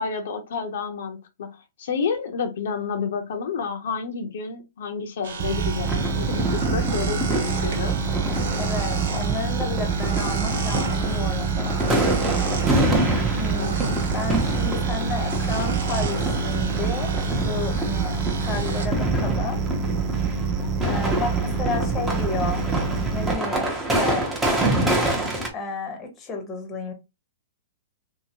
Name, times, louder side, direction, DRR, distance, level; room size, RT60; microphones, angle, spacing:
voice 1, 0.0-7.9 13.5-14.4, left 5 dB, 70° left, 0.7 m, -30 dB
sound 1, 5.2-18.9, right 5 dB, 70° right, 1.0 m, -34 dB
sound 2, 5.4-23.3, right 5 dB, 40° right, 0.4 m, -26 dB
sound 3, 5.9-25.5, right 1 dB, 10° right, 0.9 m, -27 dB
voice 2, 8.6-11.9 13.3-13.7 14.1-19.6 20.8-22.6 23.1-24.2 24.8-26.9, left 4 dB, 20° left, 0.9 m, -32 dB
2.8 x 2.7 x 2.8 m
hypercardioid pair, 150°, 0 cm